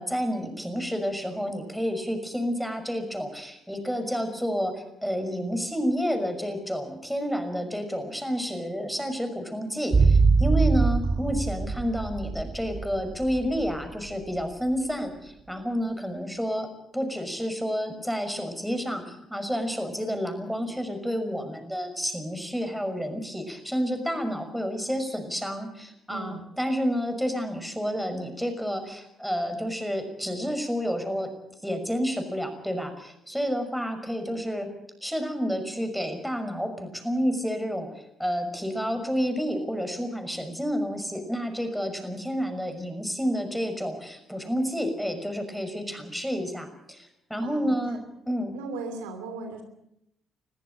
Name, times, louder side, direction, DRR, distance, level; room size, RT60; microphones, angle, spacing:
voice 1, 0.0-16.7 16.9-31.3 31.6-34.7 35.0-37.9 38.2-48.0 48.3-48.5, equal, ahead, 7 dB, 5.9 m, -30 dB
sound 1, 9.9-14.2 14.4-14.5, right 4 dB, 35° right, 4.4 m, -23 dB
voice 2, 11.1-11.5 26.1-26.5 47.4-48.0 48.5-49.6, right 3 dB, 90° right, 6 dB, 3.0 m, -38 dB
22.0 x 14.5 x 9.8 m, 0.80 s
hypercardioid pair, 55°, 0 cm